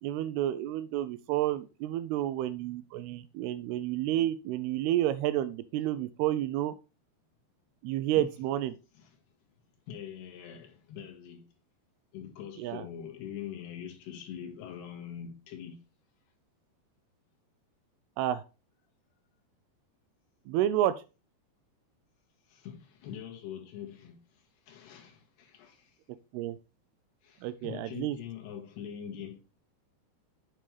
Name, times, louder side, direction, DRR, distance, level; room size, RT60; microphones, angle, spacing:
voice 1, 0.0-6.7 7.8-8.8 12.6-12.9 18.2-18.4 20.5-20.9 26.3-26.6 27.4-28.2, right 13 dB, 80° right, 2.5 m, -30 dB
voice 2, 9.9-11.5 12.1-15.8 22.5-26.0 27.2-29.4, left 9 dB, 75° left, 3.8 m, -43 dB
8.9 x 6.7 x 3.3 m
omnidirectional pair, 4.8 m